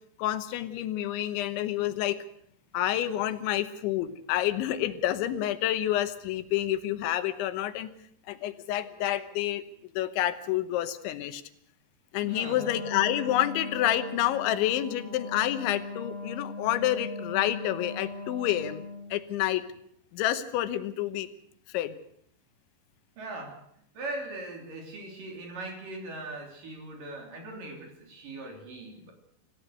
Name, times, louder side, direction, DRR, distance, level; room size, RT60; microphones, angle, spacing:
voice 1, 0.2-2.2 2.7-7.9 8.3-9.6 10.0-11.4 12.1-18.9 19.1-19.6 20.1-21.3 21.7-22.0, left 13 dB, 85° left, 11 dB, 3.4 m, -28 dB
voice 2, 12.2-12.8 23.2-23.6 23.9-29.1, right 2 dB, 50° right, 2 dB, 4.8 m, -40 dB
Wind instrument woodwind instrument, 12.5-19.1, left 3 dB, 15° left, 3.4 m, -39 dB
26.5 x 15.0 x 6.7 m, 0.69 s
omnidirectional pair, 5.3 m